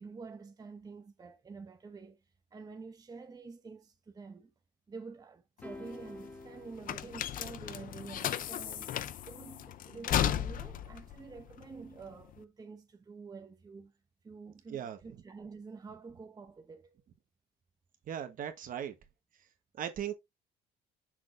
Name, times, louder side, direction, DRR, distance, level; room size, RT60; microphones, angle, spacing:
voice 1, 0.0-2.2 2.5-4.5 4.9-9.0 9.3-13.9 14.2-17.0, right 4 dB, 20° right, 0.8 m, -48 dB
sound 1, 5.6-12.4, left 10 dB, 55° left, 0.6 m, -35 dB
sound 2, 5.6-8.0, left 2 dB, 10° left, 1.2 m, -50 dB
voice 2, 18.1-19.0 19.7-20.1, right 9 dB, 55° right, 1.3 m, -37 dB
6.3 x 5.9 x 2.6 m
cardioid pair, 110°, 17 cm